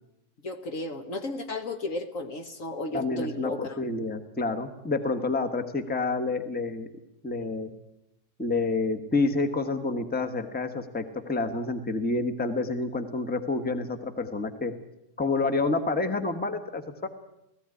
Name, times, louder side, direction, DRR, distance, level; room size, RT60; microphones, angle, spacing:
voice 1, 0.4-3.7, left 2 dB, 50° left, 6 dB, 1.4 m, -34 dB
voice 2, 2.9-6.9 7.2-7.7 8.4-14.7 15.2-17.1, left 3 dB, 5° left, 8 dB, 1.1 m, -28 dB
18.0 x 15.5 x 9.8 m, 0.85 s
omnidirectional pair, 2.0 m